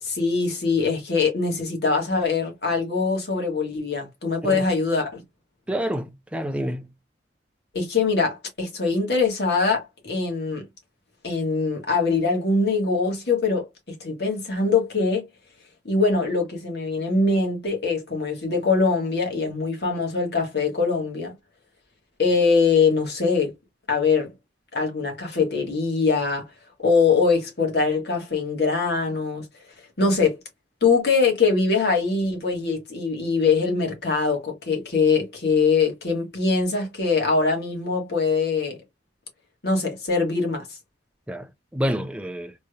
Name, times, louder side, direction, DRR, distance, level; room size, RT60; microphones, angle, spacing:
voice 1, 0.0-5.2 7.7-10.7 11.2-13.7 14.0-15.3 15.9-21.3 22.2-23.5 23.9-24.3 24.7-26.5 26.8-29.5 30.0-30.4 30.8-38.8 39.6-40.8, left 4 dB, 65° left, 1.8 m, -22 dB
voice 2, 5.7-6.9 41.3-42.5, equal, 5° right, 0.4 m, -28 dB
3.9 x 3.3 x 2.5 m
head